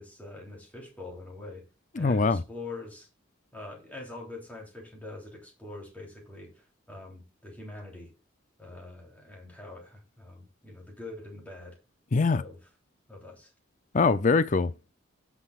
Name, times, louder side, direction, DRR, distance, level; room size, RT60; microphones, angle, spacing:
voice 1, 0.0-1.6 1.9-3.1 3.5-8.1 8.6-11.8 12.3-12.6 13.1-13.5, left 2 dB, 10° left, 3.3 m, -44 dB
voice 2, 2.0-2.4 12.1-12.4 13.9-14.9, left 4 dB, 40° left, 0.5 m, -23 dB
16.5 x 6.1 x 2.4 m
head